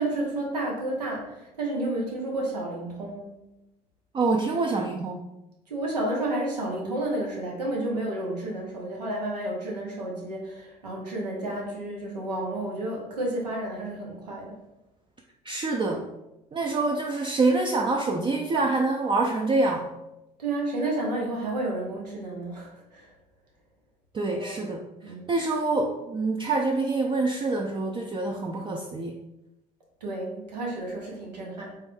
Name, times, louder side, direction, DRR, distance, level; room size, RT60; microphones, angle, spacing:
voice 1, 0.0-3.3 5.7-14.6 20.4-23.1 24.3-24.6 25.0-25.3 30.0-31.7, right 1 dB, 85° right, -1 dB, 0.7 m, -31 dB
voice 2, 4.1-5.2 15.4-16.1 16.5-19.9 24.1-29.2, right 3 dB, 25° right, 1 dB, 0.4 m, -26 dB
3.4 x 3.1 x 3.2 m, 0.94 s
figure-of-eight pair, 55°, 20 cm